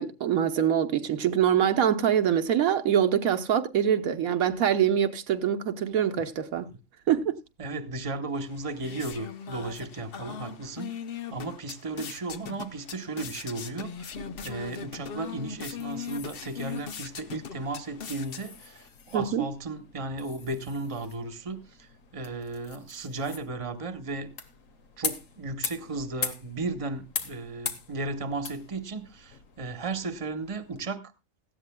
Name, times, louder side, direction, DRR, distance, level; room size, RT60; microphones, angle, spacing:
voice 1, 0.0-6.7 7.1-7.3 19.1-19.5, right 9 dB, 85° right, 1.4 m, -24 dB
voice 2, 7.6-24.3 25.0-31.1, right 2 dB, 25° right, 1.1 m, -35 dB
sound 1, 8.3-18.9, left 7 dB, 50° left, 0.9 m, -40 dB
sound 2, 14.0-30.8, left 5 dB, 70° left, 1.7 m, -42 dB
17.0 x 14.0 x 2.2 m
omnidirectional pair, 1.4 m